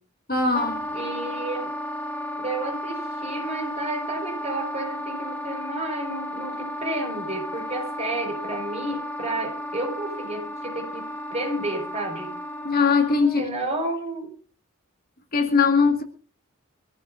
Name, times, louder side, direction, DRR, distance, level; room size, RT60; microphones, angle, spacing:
voice 1, 0.3-0.8 12.6-13.5 15.3-16.0, left 4 dB, 45° left, 1.9 m, -20 dB
Wind instrument woodwind instrument, 0.5-13.4, left 1 dB, 10° left, 1.8 m, -33 dB
voice 2, 0.9-1.7 2.4-12.3 13.4-14.3, right 2 dB, 30° right, 4.8 m, -31 dB
24.5 x 15.0 x 2.6 m
head